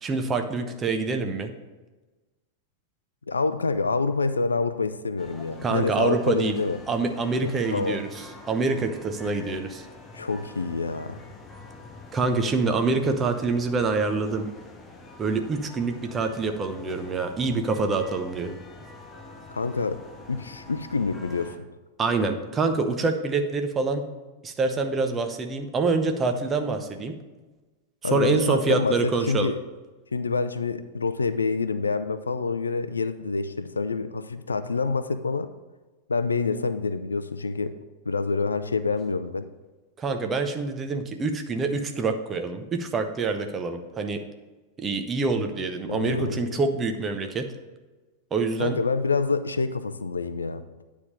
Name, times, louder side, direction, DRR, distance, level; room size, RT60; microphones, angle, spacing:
voice 1, 0.0-1.5 5.6-6.6 6.9-8.1 8.5-9.8 12.1-14.5 15.2-18.6 22.0-24.0 24.4-27.1 28.0-29.5 40.0-44.2 44.8-47.5 48.3-48.8, right 3 dB, 20° right, 6 dB, 0.8 m, -26 dB
voice 2, 3.3-6.8 7.4-8.0 10.1-11.2 19.5-20.0 20.3-21.7 28.0-29.6 30.1-35.5 36.1-37.8 38.1-39.5 45.9-46.6 48.6-50.6, left 4 dB, 75° left, 11 dB, 0.4 m, -27 dB
sound 1, 5.2-21.6, left 3 dB, 20° left, 0.9 m, -46 dB
9.5 x 3.6 x 6.5 m, 1.2 s
figure-of-eight pair, 90°, 0 cm